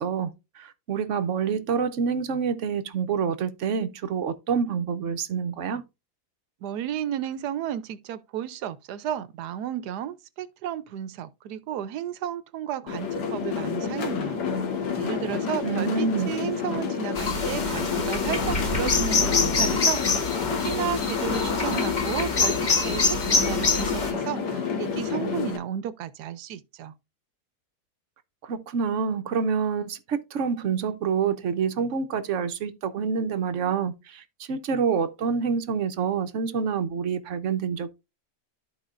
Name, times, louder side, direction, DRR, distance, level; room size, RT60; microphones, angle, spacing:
voice 1, 0.0-5.8 15.6-16.3 28.4-37.9, right 6 dB, 60° right, 0.9 m, -27 dB
voice 2, 6.6-14.4 15.0-20.0 20.5-26.9, right 10 dB, 75° right, 1.2 m, -33 dB
sound 1, 12.9-25.6, left 6 dB, 85° left, 1.8 m, -29 dB
sound 2, 17.1-24.1, left 4 dB, 35° left, 0.9 m, -26 dB
13.5 x 4.5 x 2.5 m
omnidirectional pair, 1.8 m